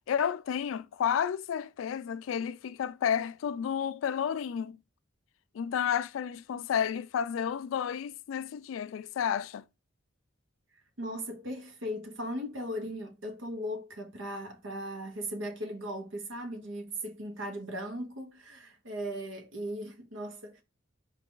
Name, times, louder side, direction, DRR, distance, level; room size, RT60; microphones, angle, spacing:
voice 1, 0.1-4.8 5.5-9.6, left 8 dB, 85° left, 0.3 m, -31 dB
voice 2, 11.0-20.6, equal, 75° right, 1.1 m, -38 dB
4.6 x 2.4 x 3.7 m
head